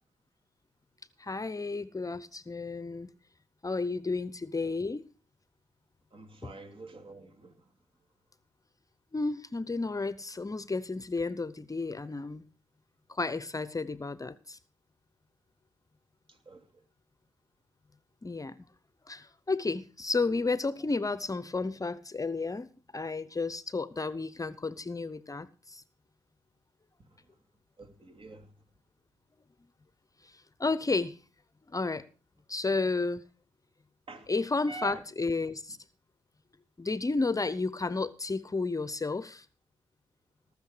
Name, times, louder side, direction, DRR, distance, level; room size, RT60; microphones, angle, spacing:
voice 1, 1.2-3.1 3.6-5.0 6.4-6.5 9.1-12.4 13.1-14.6 18.2-18.6 19.1-22.7 22.9-25.8 30.6-31.2 31.7-32.0 32.5-33.2 34.3-35.8 36.8-39.5, left 3 dB, 25° left, 0.7 m, -32 dB
voice 2, 6.1-7.5 16.5-16.6 27.8-28.5 34.1-34.3 34.7-35.0, right 3 dB, 45° right, 2.9 m, -45 dB
18.5 x 6.7 x 5.0 m
supercardioid pair, 50°, 13 cm